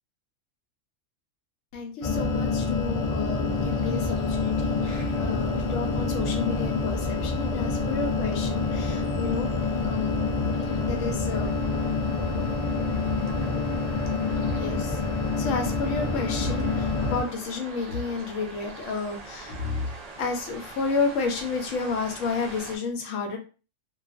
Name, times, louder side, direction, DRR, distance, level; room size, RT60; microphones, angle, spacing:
voice 1, 1.7-9.5 9.8-10.2 10.8-11.6 11.9-12.1 12.9-13.0 14.4-15.0 15.4-19.9 20.2-23.4, left 4 dB, 85° left, 3 dB, 1.0 m, -31 dB
sound 1, 2.0-17.2, left 4 dB, 65° left, 0.3 m, -27 dB
sound 2, 3.5-22.8, right 3 dB, 45° right, 0.5 m, -44 dB
2.4 x 2.2 x 2.4 m, 0.34 s
omnidirectional pair, 1.3 m